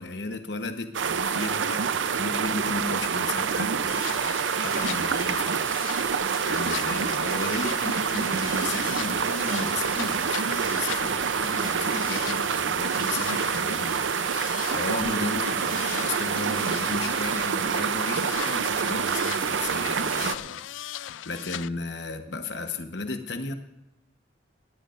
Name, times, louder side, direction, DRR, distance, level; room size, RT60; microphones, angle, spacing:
voice 1, 0.0-4.0 4.6-5.8 6.5-23.5, left 3 dB, 65° left, 7 dB, 1.1 m, -35 dB
sound 1, 0.9-20.4, right 6 dB, 80° right, 0.6 m, -27 dB
sound 2, 3.9-21.7, left 11 dB, 85° left, 0.4 m, -38 dB
sound 3, 6.3-12.9, right 2 dB, 10° right, 6.3 m, -58 dB
20.0 x 15.5 x 2.5 m, 0.89 s
head